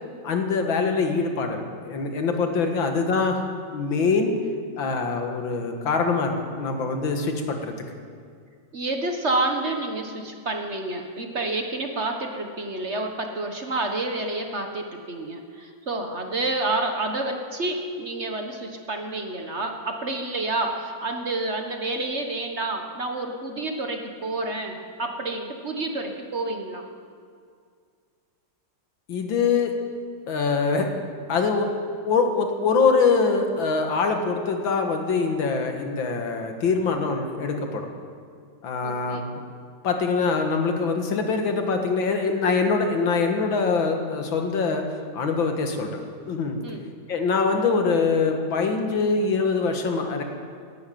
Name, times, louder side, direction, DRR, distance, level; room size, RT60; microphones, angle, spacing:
voice 1, 0.2-3.4 3.7-4.3 4.8-6.3 6.6-7.7 29.1-29.7 30.3-30.9 31.3-31.7 32.0-37.9 38.6-39.2 39.8-44.8 45.1-46.0 46.3-46.6 47.1-50.2, left 4 dB, 85° left, 4 dB, 2.3 m, -23 dB
voice 2, 8.7-26.8 38.8-39.2 46.6-46.8, right 2 dB, 40° right, 4 dB, 1.3 m, -29 dB
14.5 x 10.5 x 9.2 m, 2.2 s
omnidirectional pair, 2.1 m